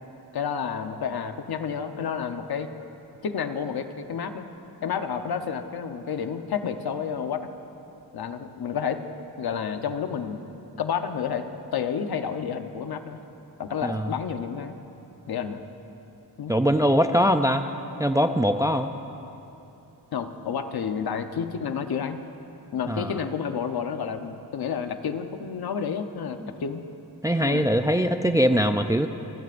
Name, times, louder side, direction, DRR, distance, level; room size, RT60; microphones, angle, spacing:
voice 1, 0.3-2.7 3.2-4.5 4.8-7.5 8.1-9.0 9.4-10.4 10.8-11.4 11.7-13.2 13.6-14.7 15.3-15.6 16.4-16.5 20.1-22.2 22.7-26.8 27.4-27.7, left 7 dB, 65° left, 8 dB, 0.9 m, -30 dB
voice 2, 16.5-17.7 18.0-18.9 22.9-23.1 27.2-29.1, equal, 10° right, 8 dB, 0.3 m, -22 dB
26.5 x 17.0 x 2.6 m, 2.9 s
wide cardioid pair, 130°, 40 cm